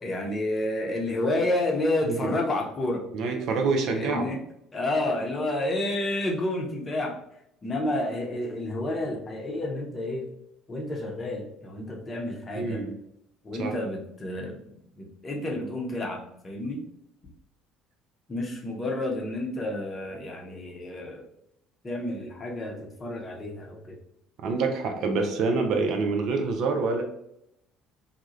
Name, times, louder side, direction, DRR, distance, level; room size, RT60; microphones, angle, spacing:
voice 1, 0.0-3.0 3.9-4.4 4.7-7.1 7.6-10.2 10.7-12.8 13.4-14.6 15.0-16.8 18.3-21.3 21.8-24.0, left 1 dB, 30° left, 0 dB, 0.7 m, -30 dB
voice 2, 3.1-4.3 12.5-12.9 13.6-13.7 24.4-27.0, right 4 dB, 55° right, 3 dB, 0.4 m, -26 dB
2.2 x 2.0 x 3.1 m, 0.78 s
figure-of-eight pair, 55°, 0 cm